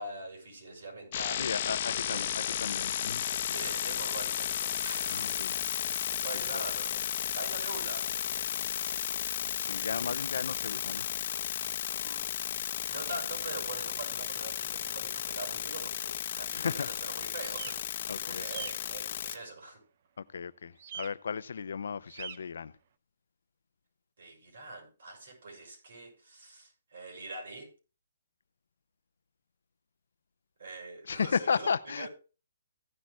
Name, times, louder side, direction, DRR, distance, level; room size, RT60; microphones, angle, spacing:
voice 1, 0.0-2.6 3.5-5.4 6.2-9.2 11.9-12.2 12.9-19.8 24.2-27.7 30.6-32.1, right 2 dB, 60° right, 6.5 m, -43 dB
sound 1, 1.1-19.4, left 10 dB, 35° left, 1.0 m, -34 dB
voice 2, 1.3-3.5 5.1-5.6 6.5-6.6 9.6-11.1 16.5-16.9 18.1-18.4 20.2-22.7 31.1-32.1, left 6 dB, 70° left, 0.5 m, -34 dB
sound 2, 17.3-17.8 18.3-18.7 20.8-21.1 22.1-22.4, right 7 dB, 40° right, 0.7 m, -42 dB
16.0 x 10.5 x 2.3 m
hypercardioid pair, 170°, 0 cm